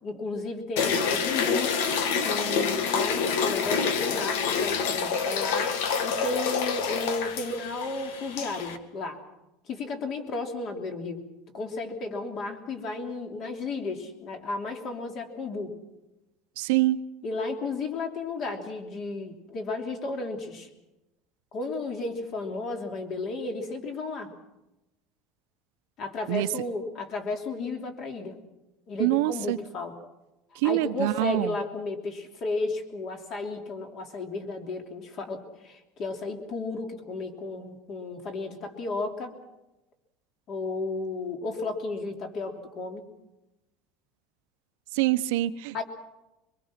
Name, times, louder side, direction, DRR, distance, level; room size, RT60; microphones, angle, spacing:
voice 1, 0.0-1.7 2.2-9.2 9.7-11.2 11.5-15.7 17.2-20.7 21.5-24.3 26.0-28.4 28.9-29.9 30.6-39.3 40.5-43.1 45.7-45.8, left 3 dB, 35° left, 4 dB, 3.0 m, -33 dB
sound 1, 0.8-8.8, left 6 dB, 80° left, 2.0 m, -27 dB
voice 2, 16.6-17.0 26.3-26.5 29.0-29.6 30.6-31.6 44.9-45.7, right 16 dB, 75° right, 12 dB, 1.0 m, -25 dB
24.5 x 22.5 x 6.0 m, 0.96 s
cardioid pair, 175°, 0 cm